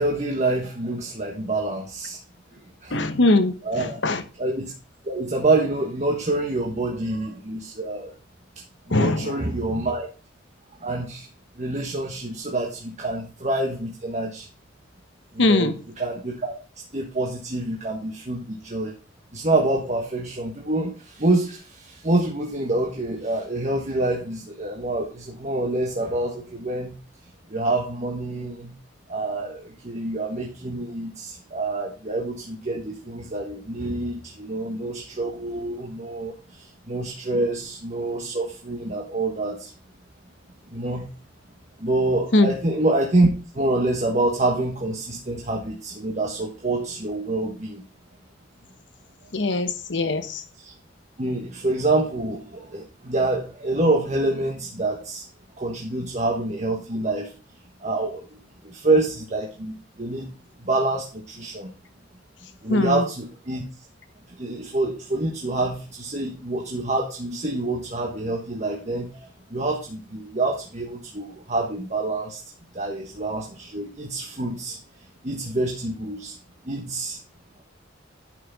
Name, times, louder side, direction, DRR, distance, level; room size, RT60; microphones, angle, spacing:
voice 1, 0.0-2.2 2.8-3.0 3.6-4.0 4.4-4.7 5.0-8.1 8.9-10.1 10.8-11.3 11.6-14.5 15.3-16.5 16.9-18.9 19.3-27.0 27.5-28.7 29.1-39.7 40.7-41.1 41.8-43.3 43.5-47.8 50.6-50.7 51.2-55.2 55.6-57.3 57.8-58.4 58.6-60.3 60.6-61.7 62.6-63.6 64.4-72.4 72.7-74.8 75.2-76.3 76.6-77.2, right 2 dB, 40° right, 1.4 m, -26 dB
voice 2, 2.9-4.2 8.9-9.3 15.4-15.7 42.3-42.5 49.3-50.4 62.7-63.0, left 2 dB, 65° left, 1.1 m, -21 dB
11.0 x 5.8 x 4.1 m
head